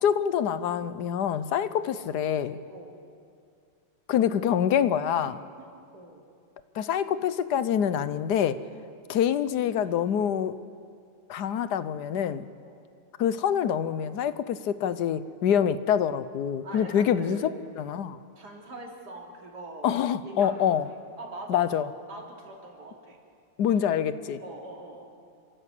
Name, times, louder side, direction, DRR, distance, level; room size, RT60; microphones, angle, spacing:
voice 1, 0.0-2.6 4.1-5.4 6.7-8.6 9.1-10.6 11.3-12.5 13.2-17.4 17.8-18.2 19.8-20.8 21.5-21.9 23.6-24.4, left 9 dB, 65° left, 13 dB, 1.3 m, -26 dB
voice 2, 5.6-6.2 8.8-9.0 12.6-12.8 16.6-17.6 18.3-21.7 22.1-23.2 24.4-25.2, right 1 dB, 60° right, -1 dB, 3.6 m, -43 dB
28.0 x 13.5 x 8.4 m, 2.3 s
omnidirectional pair, 2.0 m